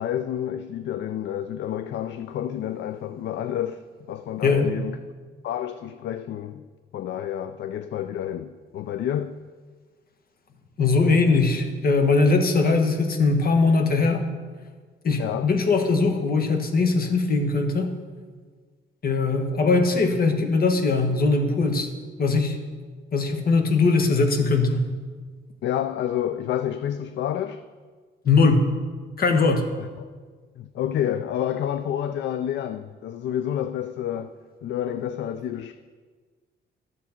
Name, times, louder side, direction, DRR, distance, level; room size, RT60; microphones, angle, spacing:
voice 1, 0.0-5.0 5.4-6.6 6.9-9.4 15.2-15.5 25.6-27.6 29.8-30.1 30.6-34.3 34.6-35.7, left 10 dB, 65° left, 0.4 m, -29 dB
voice 2, 10.8-14.2 15.0-17.9 19.0-21.9 22.2-22.6 23.1-24.9 28.2-28.7 29.2-29.7, left 3 dB, 50° left, 1.3 m, -20 dB
11.5 x 7.1 x 4.4 m
cardioid pair, 90°, 20 cm